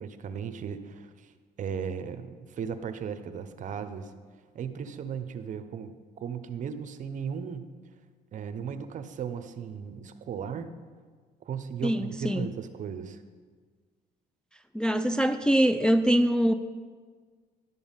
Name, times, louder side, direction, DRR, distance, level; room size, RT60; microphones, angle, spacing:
voice 1, 0.0-1.3 1.6-4.1 4.5-7.7 8.3-10.7 11.4-13.2, right 7 dB, 50° right, 10 dB, 0.8 m, -36 dB
voice 2, 11.8-12.5 14.7-16.5, equal, 5° left, 7 dB, 0.3 m, -23 dB
11.0 x 7.0 x 5.5 m, 1.6 s
cardioid pair, 110°, 17 cm